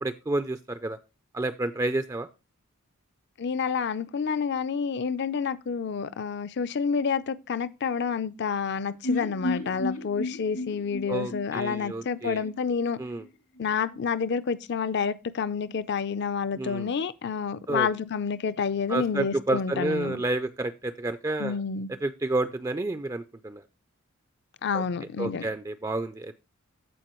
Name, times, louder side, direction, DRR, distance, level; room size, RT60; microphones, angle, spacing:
voice 1, 0.0-1.0 1.3-2.3 11.1-12.5 13.0-13.3 16.5-16.9 17.7-17.9 18.9-21.6 21.9-23.6 24.7-24.8 25.2-26.3, right 2 dB, 15° right, 0.3 m, -30 dB
voice 2, 3.4-13.0 13.6-20.2 21.4-21.9 24.6-25.5, left 6 dB, 50° left, 0.4 m, -29 dB
sound 1, 9.0-12.9 13.2-13.3 13.6-13.7, left 2 dB, 80° left, 1.9 m, -33 dB
14.0 x 4.8 x 3.0 m
head